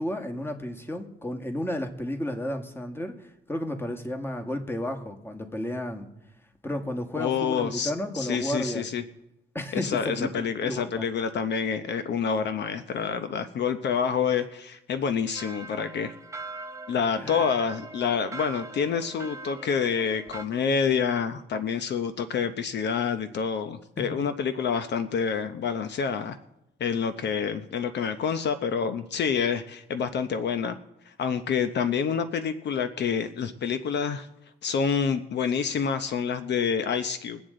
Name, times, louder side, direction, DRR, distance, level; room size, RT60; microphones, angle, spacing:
voice 1, 0.0-6.1 6.6-8.9 9.6-11.1 17.2-17.4, left 1 dB, 10° left, 4 dB, 1.7 m, -32 dB
voice 2, 7.2-9.0 9.7-16.1 16.9-26.4 26.8-30.8 31.1-34.3 34.6-37.4, left 6 dB, 60° left, 9 dB, 0.8 m, -27 dB
sound 1, 15.4-20.5, right 3 dB, 15° right, 0.8 m, -42 dB
22.5 x 8.0 x 3.8 m, 0.87 s
cardioid pair, 90°, 20 cm